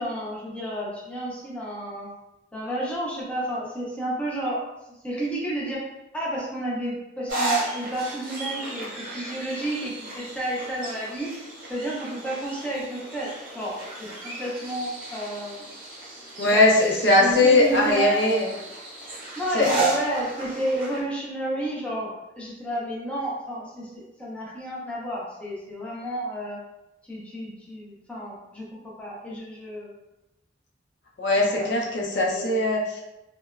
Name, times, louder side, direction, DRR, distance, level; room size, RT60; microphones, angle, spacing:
voice 1, 0.0-2.1 2.5-4.6 5.0-5.8 6.1-11.3 11.7-15.7 16.4-16.9 17.2-18.2 19.4-26.6 27.1-29.9 31.5-31.7 32.2-32.6, right 1 dB, 5° left, -7 dB, 0.4 m, -31 dB
sound 1, 7.3-21.0, right 2 dB, 45° right, 0.8 m, -34 dB
voice 2, 16.4-18.5 19.5-19.8 31.2-33.0, left 2 dB, 65° left, -3 dB, 0.6 m, -20 dB
2.8 x 2.1 x 2.3 m, 0.93 s
head